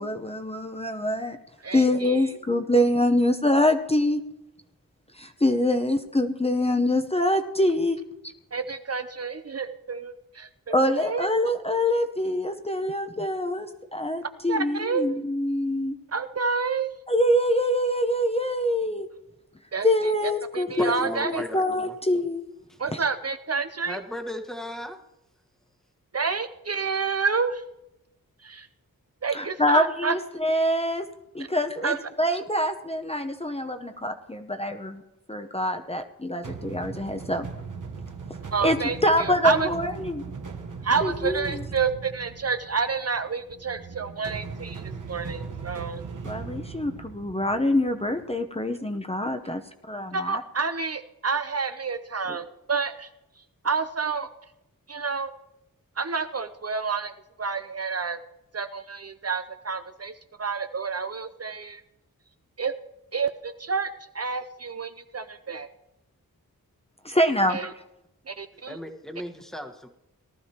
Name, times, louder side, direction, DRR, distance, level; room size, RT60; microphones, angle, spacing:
voice 1, 0.0-1.4 1.7-4.2 5.1-8.0 10.7-16.0 17.1-19.1 19.8-22.4 29.3-31.1 31.3-35.0 35.3-37.5 38.6-38.8 39.0-40.2 41.0-41.6 46.2-50.4 67.0-67.6, left 1 dB, 20° left, 6 dB, 0.8 m, -25 dB
voice 2, 1.6-2.4 8.5-11.3 14.5-15.1 16.1-17.0 19.7-21.4 22.8-24.0 26.1-27.6 28.4-28.7 29.2-30.1 31.8-32.0 38.5-39.7 40.8-46.0 50.1-53.1 53.4-54.3 54.9-55.3 56.0-57.1 57.4-58.2 58.5-61.8 62.6-62.7 63.1-65.7 67.5-67.7 68.3-68.8, right 5 dB, 45° right, 9 dB, 0.6 m, -29 dB
voice 3, 20.8-22.0 22.7-22.8 23.8-25.0 68.7-69.9, equal, ahead, 5 dB, 1.3 m, -36 dB
sound 1, 36.4-48.3, right 5 dB, 60° right, 1.1 m, -39 dB
18.5 x 12.5 x 2.9 m, 0.89 s
wide cardioid pair, 60°, 34 cm